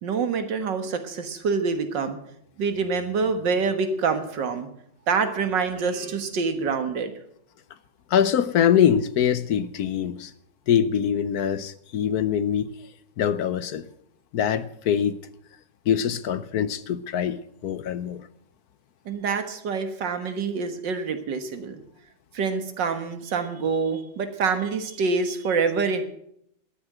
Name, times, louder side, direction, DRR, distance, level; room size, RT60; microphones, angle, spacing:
voice 1, 0.0-2.2 2.6-4.7 5.1-7.1 19.1-21.8 22.3-26.0, right 5 dB, 80° right, 2.2 m, -26 dB
voice 2, 8.1-10.3 10.7-12.7 13.2-13.8 14.3-15.2 15.9-18.2, left 9 dB, 65° left, 1.1 m, -23 dB
12.5 x 9.7 x 7.8 m
omnidirectional pair, 1.9 m